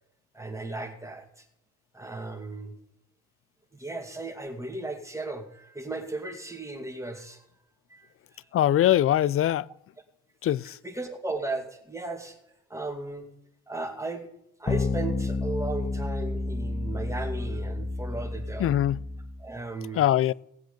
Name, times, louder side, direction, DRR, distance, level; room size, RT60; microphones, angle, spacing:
voice 1, 0.3-1.4 1.9-2.7 3.7-7.5 7.9-8.1 10.8-12.4 12.7-13.3 13.7-14.2 14.6-18.8 19.4-20.1, right 2 dB, 10° right, 2.2 m, -36 dB
voice 2, 8.5-9.7 10.4-10.8 18.6-19.0 19.9-20.3, left 12 dB, 50° left, 0.4 m, -22 dB
sound 1, 14.7-19.4, left 3 dB, 25° left, 1.0 m, -30 dB
18.0 x 7.7 x 5.2 m
cardioid pair, 90°, 30 cm